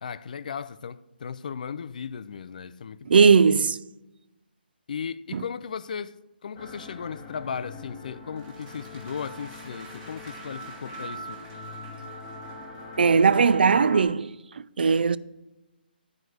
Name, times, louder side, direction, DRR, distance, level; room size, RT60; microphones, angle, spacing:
voice 1, 0.0-3.2 4.9-11.4, left 6 dB, 50° left, 0.4 m, -36 dB
voice 2, 3.1-3.8 5.3-5.4 13.0-14.3 14.8-15.2, right 5 dB, 70° right, 0.4 m, -18 dB
sound 1, 6.5-14.0, left 2 dB, 20° left, 1.4 m, -41 dB
sound 2, 8.4-13.2, right 2 dB, 15° right, 1.5 m, -51 dB
11.0 x 4.7 x 6.4 m
hypercardioid pair, 165°, 6 cm